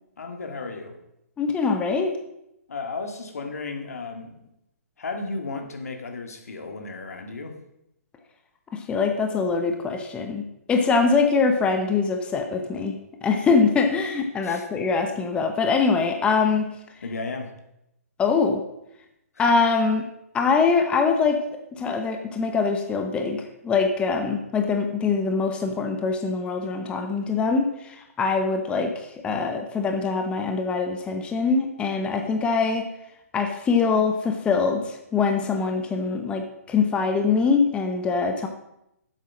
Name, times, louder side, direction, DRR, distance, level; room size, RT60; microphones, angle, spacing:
voice 1, 0.2-1.0 2.7-4.3 5.0-7.6 14.4-14.7 17.0-17.5 19.3-19.4, left 3 dB, 75° left, 5 dB, 1.9 m, -34 dB
voice 2, 1.4-2.1 8.9-10.4 10.7-16.7 18.2-18.6 19.4-20.0 20.3-21.4 21.8-32.8 33.3-38.5, left 4 dB, 15° left, 4 dB, 0.9 m, -23 dB
8.0 x 7.7 x 6.2 m, 0.82 s
hypercardioid pair, 140°, 8 cm